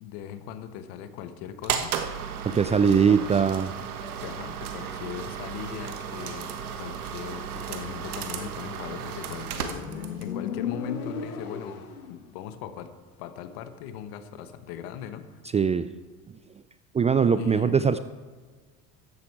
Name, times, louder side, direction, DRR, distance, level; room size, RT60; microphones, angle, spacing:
voice 1, 0.0-1.9 2.5-3.3 4.2-6.5 6.8-12.9 13.2-15.3 17.4-17.8, left 9 dB, 65° left, 9 dB, 1.4 m, -39 dB
sound 1, 1.6-10.4, right 8 dB, 85° right, 1.2 m, -34 dB
voice 2, 2.4-3.7 15.5-15.9 16.9-18.0, right 6 dB, 15° right, 13 dB, 0.4 m, -21 dB
sound 2, 3.1-10.1, left 2 dB, 30° left, 4.3 m, -52 dB
Motorcycle, 8.8-12.3, left 7 dB, 90° left, 1.3 m, -35 dB
14.0 x 10.5 x 4.7 m, 1.4 s
hypercardioid pair, 75°, 43 cm